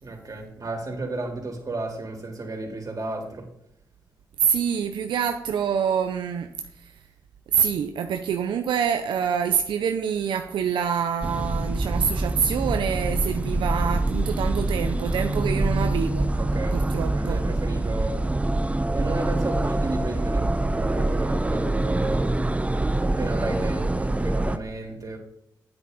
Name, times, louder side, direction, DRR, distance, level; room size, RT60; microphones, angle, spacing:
voice 1, 0.0-3.5 15.3-15.7 16.3-18.2 18.9-22.3 22.7-25.2, right 2 dB, 45° right, 0 dB, 3.7 m, -33 dB
voice 2, 4.4-6.5 6.8-6.9 7.5-16.3 16.7-17.4, right 7 dB, 90° right, 6 dB, 0.6 m, -26 dB
sound 1, 11.2-24.6, right 2 dB, 15° right, 0.7 m, -25 dB
10.0 x 9.0 x 4.1 m, 0.74 s
cardioid pair, 60°, 8 cm